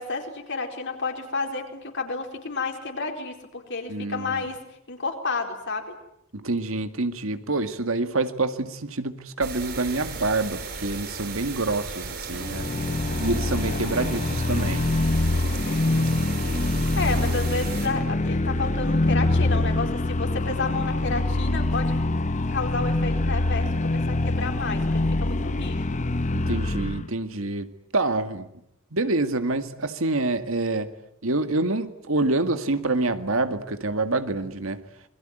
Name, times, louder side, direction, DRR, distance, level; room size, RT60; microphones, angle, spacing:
voice 1, 0.0-4.6 4.9-5.9 13.5-14.0 15.6-16.1 17.0-22.0 22.5-25.9, left 3 dB, 60° left, 3 dB, 4.5 m, -31 dB
voice 2, 3.9-4.5 6.3-12.7 13.2-14.8 26.3-28.5 28.9-30.9 31.2-34.8, right 2 dB, 70° right, 9 dB, 2.0 m, -27 dB
sound 1, 9.4-17.9, right 4 dB, 55° right, 7.4 m, -35 dB
sound 2, 12.3-27.1, left 2 dB, 35° left, 1.0 m, -25 dB
27.5 x 22.0 x 9.1 m, 0.78 s
head